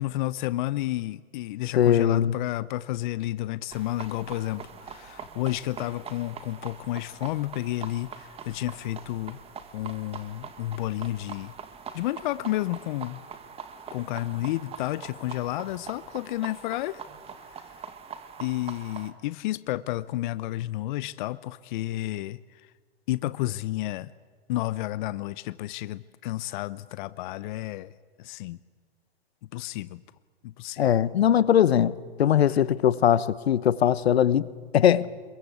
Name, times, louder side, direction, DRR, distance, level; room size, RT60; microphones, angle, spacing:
voice 1, 0.0-9.4 9.7-11.5 11.9-13.2 13.9-17.0 17.5-17.7 18.4-22.6 23.1-24.1 24.5-27.9 28.2-28.6 29.5-30.0 30.4-30.9, left 16 dB, 50° left, 17 dB, 0.7 m, -31 dB
voice 2, 1.8-2.3 30.8-34.5 34.7-35.1, left 10 dB, 80° left, 18 dB, 1.1 m, -21 dB
sound 1, 3.7-19.1, right 6 dB, 20° right, 1.9 m, -43 dB
26.0 x 22.5 x 8.4 m, 1.5 s
hypercardioid pair, 125°, 31 cm